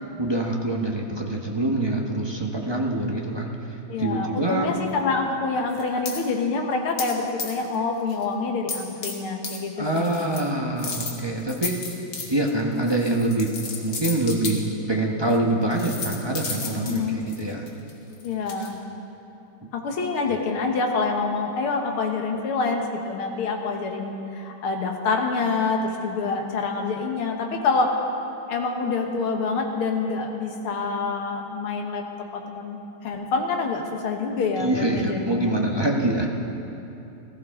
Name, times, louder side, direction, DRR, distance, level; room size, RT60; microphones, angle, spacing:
voice 1, 0.2-4.7 9.8-11.8 12.3-13.5 13.8-17.6 34.6-36.3, right 2 dB, 35° right, -1 dB, 0.4 m, -25 dB
voice 2, 3.9-10.1 16.6-17.2 18.2-18.7 19.7-27.9 28.5-32.0 32.3-35.5, left 4 dB, 90° left, 3 dB, 2.1 m, -26 dB
sound 1, 5.7-6.2 7.0-7.1 7.4-7.8 8.1-8.2 8.7-9.1 9.4-9.6 9.9-10.4 10.8-14.5 15.3-15.4 15.7-18.7, left 4 dB, 65° left, 2.3 m, -33 dB
18.5 x 15.5 x 3.7 m, 2.9 s
omnidirectional pair, 2.3 m